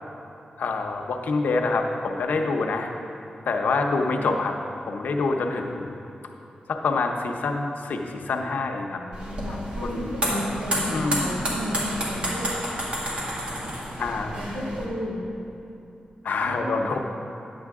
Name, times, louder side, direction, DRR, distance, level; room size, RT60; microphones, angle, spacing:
voice 1, 0.6-2.9 3.5-4.5 4.9-6.0 6.7-9.0 9.8-10.1 10.9-11.4 14.0-14.4 16.2-17.0, left 3 dB, 85° left, 3 dB, 0.7 m, -26 dB
voice 2, 8.9-12.4 14.3-15.2 16.4-17.0, equal, 70° right, -5 dB, 2.3 m, -33 dB
sound 1, 9.1-14.8, equal, 45° right, 2.2 m, -30 dB
11.0 x 8.6 x 3.6 m, 2.8 s
wide cardioid pair, 95°, 3 cm